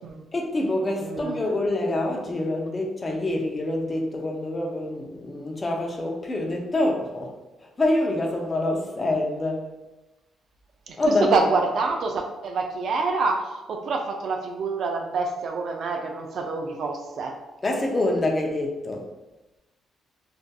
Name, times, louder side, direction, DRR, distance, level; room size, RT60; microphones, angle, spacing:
voice 1, 0.3-7.3 7.6-9.7 11.0-11.4 17.6-19.0, left 2 dB, 25° left, 1 dB, 0.4 m, -26 dB
voice 2, 1.0-1.4 10.9-17.4, right 4 dB, 65° right, 3 dB, 0.3 m, -26 dB
2.5 x 2.4 x 2.2 m, 1.0 s
cardioid pair, 90°, 0 cm